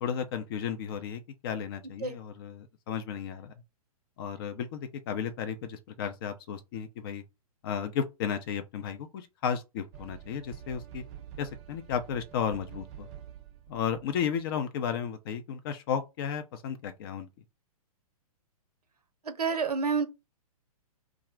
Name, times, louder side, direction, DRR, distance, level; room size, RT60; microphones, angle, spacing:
voice 1, 0.0-3.5 4.2-7.2 7.6-11.0 11.4-13.1 13.7-17.3, left 7 dB, 40° left, 0.4 m, -34 dB
sound 1, 9.9-14.4, right 10 dB, 25° right, 0.4 m, -47 dB
voice 2, 19.2-20.1, right 5 dB, 85° right, 0.6 m, -28 dB
2.5 x 2.0 x 3.3 m
figure-of-eight pair, 120°, 19 cm